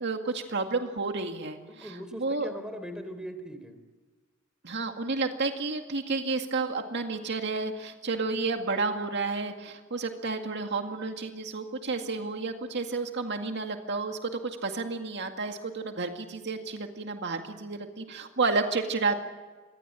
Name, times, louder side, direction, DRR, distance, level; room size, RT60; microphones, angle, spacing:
voice 1, 0.0-2.5 4.6-19.1, right 3 dB, 55° right, 5 dB, 2.1 m, -31 dB
voice 2, 1.7-3.8, equal, 5° right, 9 dB, 3.6 m, -40 dB
27.0 x 23.0 x 9.1 m, 1.3 s
head